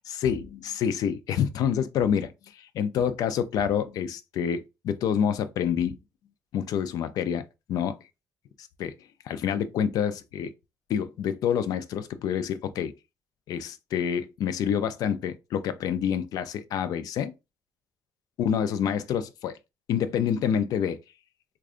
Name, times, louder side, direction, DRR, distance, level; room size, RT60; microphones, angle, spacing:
voice 1, 0.1-6.0 6.5-7.4 7.7-8.0 8.6-8.9 9.2-10.5 10.9-12.9 13.5-17.3 18.4-19.6 19.9-21.0, left 8 dB, 70° left, 0.4 m, -27 dB
4.8 x 2.2 x 2.5 m
cardioid pair, 155°, 7 cm